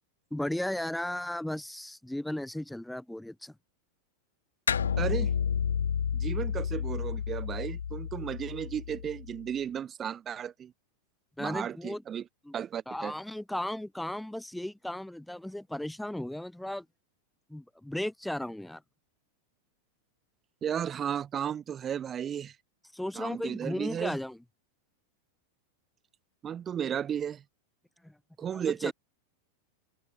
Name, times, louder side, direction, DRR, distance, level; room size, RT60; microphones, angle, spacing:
voice 1, 0.3-3.5 11.4-12.0 12.4-12.5 12.9-16.8 17.5-18.8 22.9-24.4 28.0-28.2 28.8-28.9, left 1 dB, 5° left, 1.6 m, -35 dB
sound 1, 4.7-9.4, left 7 dB, 70° left, 0.3 m, -31 dB
voice 2, 5.0-5.3 6.1-10.7 11.4-12.2 12.5-13.1 20.6-22.6 23.2-24.2 26.4-27.4 28.4-28.9, right 9 dB, 25° right, 0.7 m, -34 dB
figure-of-eight pair, 90°, 0 cm